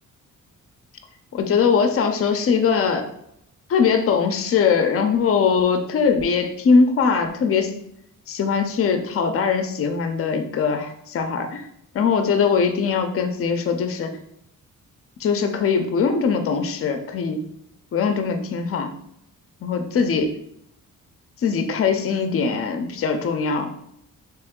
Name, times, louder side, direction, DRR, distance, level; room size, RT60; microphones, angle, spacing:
voice 1, 1.3-3.1 3.7-7.7 8.3-11.7 11.9-14.2 15.2-17.4 17.9-18.9 19.6-20.4 21.4-23.7, left 5 dB, 45° left, 7 dB, 0.5 m, -21 dB
3.4 x 3.0 x 3.6 m, 0.74 s
cardioid pair, 140°, 33 cm